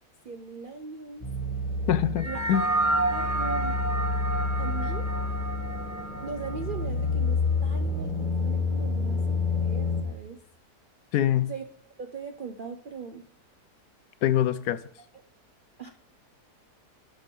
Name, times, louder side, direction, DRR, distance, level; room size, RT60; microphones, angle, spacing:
voice 1, 0.2-1.3 2.2-2.4 3.1-3.8 4.6-5.1 6.2-10.4 11.5-11.6 12.0-13.2 15.8-15.9, right 5 dB, 60° right, 0.5 m, -39 dB
sound 1, 1.2-10.0, left 3 dB, 20° left, 2.0 m, -29 dB
voice 2, 1.9-2.6 11.1-11.5 14.2-14.9, left 11 dB, 75° left, 1.1 m, -24 dB
sound 2, 2.2-6.8, right 2 dB, 10° right, 1.6 m, -30 dB
11.5 x 5.2 x 5.2 m
omnidirectional pair, 1.8 m